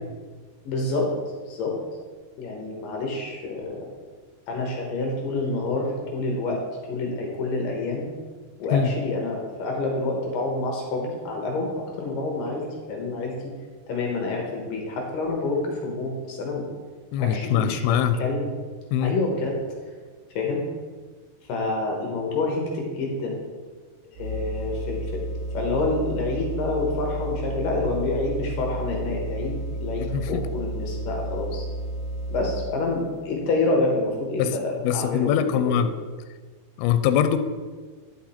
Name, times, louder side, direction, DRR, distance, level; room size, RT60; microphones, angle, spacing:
voice 1, 0.7-1.1 1.5-1.8 2.4-3.9 4.5-6.6 6.9-8.1 8.6-13.3 13.9-16.6 17.2-18.5 19.0-19.6 20.4-20.6 21.5-23.4 24.2-25.2 25.5-31.7 32.3-35.8, left 2 dB, 65° left, 0 dB, 2.7 m, -28 dB
voice 2, 17.1-18.2 18.9-19.2 30.1-30.5 34.4-34.6 34.8-35.9 36.8-37.4, left 9 dB, 85° left, 10 dB, 2.6 m, -22 dB
sound 1, 24.1-32.8, right 1 dB, 30° right, 2.7 m, -32 dB
10.5 x 6.0 x 4.3 m, 1.4 s
omnidirectional pair, 4.5 m